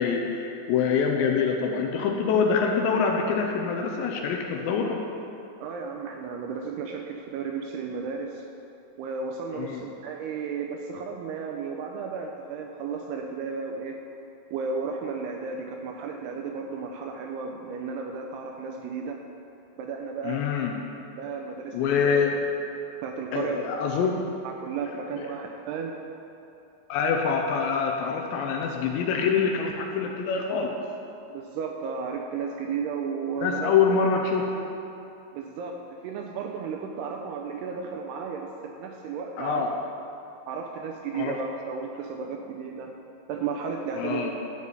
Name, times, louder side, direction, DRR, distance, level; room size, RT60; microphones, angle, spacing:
voice 1, 0.0-5.0 9.6-9.8 20.2-20.7 21.7-22.4 23.3-24.2 25.2-25.3 26.9-30.8 33.4-34.6 39.4-39.7 41.1-41.3 44.0-44.3, left 6 dB, 85° left, 1 dB, 2.9 m, -25 dB
voice 2, 5.6-8.5 9.0-14.0 14.5-19.2 19.8-20.5 21.2-22.1 23.0-23.6 24.4-26.0 31.3-33.7 35.3-39.7 40.5-42.9 43.3-44.3, right 5 dB, 80° right, 2 dB, 2.4 m, -34 dB
12.0 x 5.0 x 8.1 m, 2.8 s
omnidirectional pair, 5.2 m